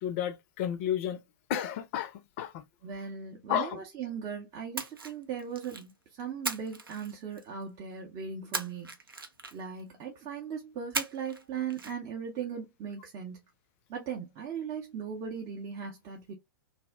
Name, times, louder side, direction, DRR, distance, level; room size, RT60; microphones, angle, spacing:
voice 1, 0.0-1.2 1.5-2.6 3.5-3.8, left 10 dB, 35° left, 0.4 m, -32 dB
voice 2, 2.8-8.9 9.5-13.4 13.9-16.3, right 7 dB, 25° right, 0.6 m, -38 dB
Splash splatter, 4.7-5.9 6.4-7.6 8.5-9.8 10.9-11.4 11.7-11.9, right 3 dB, 80° right, 0.6 m, -37 dB
2.5 x 2.0 x 3.3 m
figure-of-eight pair, 105°, 12 cm